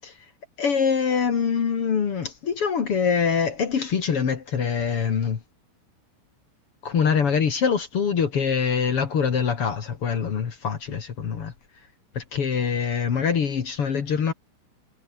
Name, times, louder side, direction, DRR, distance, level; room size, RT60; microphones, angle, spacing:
voice 1, 0.6-5.4 6.8-11.5 12.1-14.3, left 6 dB, 50° left, 1.7 m, -24 dB
omnidirectional pair, 5.8 m